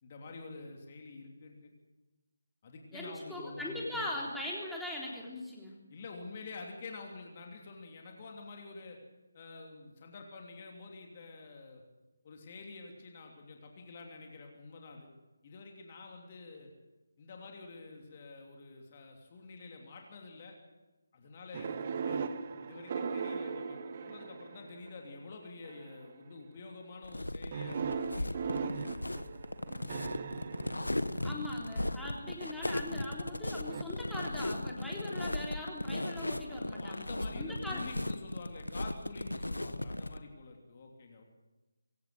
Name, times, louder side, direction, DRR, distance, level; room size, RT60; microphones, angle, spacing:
voice 1, 0.0-1.7 2.6-4.2 5.9-9.0 9.3-11.8 12.2-15.1 15.4-16.7 17.2-20.6 21.1-22.2 22.6-28.6 36.7-41.2, left 3 dB, 30° left, 1 dB, 3.1 m, -48 dB
voice 2, 2.9-5.8 31.2-37.8, left 1 dB, ahead, -5 dB, 3.7 m, -40 dB
sound 1, 21.5-24.9 25.6-26.1 27.5-31.6 33.7-33.8, right 5 dB, 30° right, 1.1 m, -38 dB
sound 2, 27.0-40.2, left 1 dB, 75° left, 1.4 m, -37 dB
23.0 x 16.5 x 8.0 m, 1.1 s
figure-of-eight pair, 155°, 0 cm